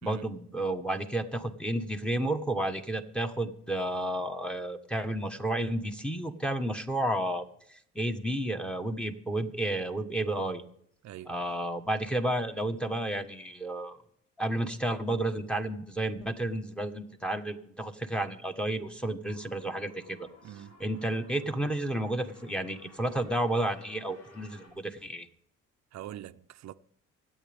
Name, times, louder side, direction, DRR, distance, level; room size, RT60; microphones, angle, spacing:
voice 1, 0.0-10.6 11.3-14.0 14.4-20.3 20.8-25.3, right 1 dB, 5° left, 1.4 m, -31 dB
voice 2, 11.0-11.4 20.4-20.8 25.9-26.7, right 12 dB, 65° right, 0.6 m, -43 dB
sound 1, 19.2-24.7, left 2 dB, 85° left, 6.1 m, -56 dB
25.0 x 8.8 x 3.6 m
cardioid pair, 90°, 30 cm